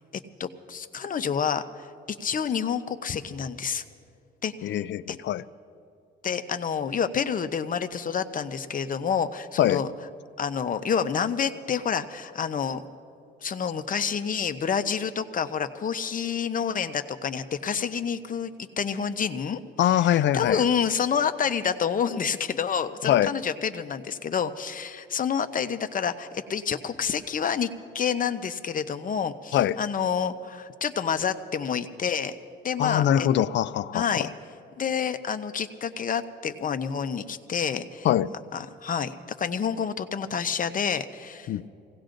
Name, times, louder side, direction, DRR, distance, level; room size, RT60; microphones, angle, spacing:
voice 1, 0.4-3.8 4.4-4.8 5.1-5.2 6.2-9.9 10.4-12.8 13.4-19.6 19.8-32.3 32.6-33.3 33.9-34.3 34.8-38.1 38.5-41.5, left 7 dB, 45° left, 10 dB, 0.8 m, -28 dB
voice 2, 4.6-5.4 9.6-9.8 19.8-20.6 23.0-23.3 29.5-29.8 32.8-34.3 38.0-38.3 41.5-41.7, left 11 dB, 65° left, 16 dB, 0.4 m, -23 dB
26.5 x 17.5 x 2.6 m, 2.5 s
cardioid pair, 90°, 20 cm